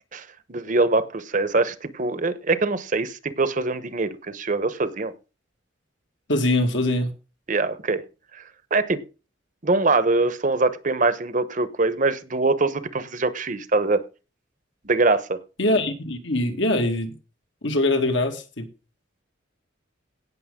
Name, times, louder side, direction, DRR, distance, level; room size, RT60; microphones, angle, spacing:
voice 1, 0.1-5.1 7.5-8.0 8.3-8.4 8.7-9.0 9.6-14.0 14.8-15.4, right 3 dB, 40° right, 1.0 m, -23 dB
voice 2, 6.3-7.1 15.6-17.1 17.6-18.7, left 1 dB, 65° left, 2.2 m, -23 dB
17.5 x 6.6 x 3.7 m
head